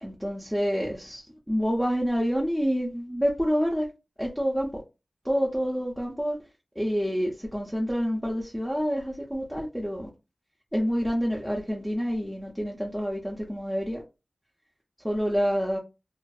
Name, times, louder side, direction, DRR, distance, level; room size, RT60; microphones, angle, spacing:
voice 1, 0.0-3.9 4.2-4.8 5.2-6.4 6.8-10.1 10.7-14.0 15.0-15.8, equal, 5° right, 0.6 m, -28 dB
2.5 x 2.3 x 2.3 m
cardioid pair, 40°, 0 cm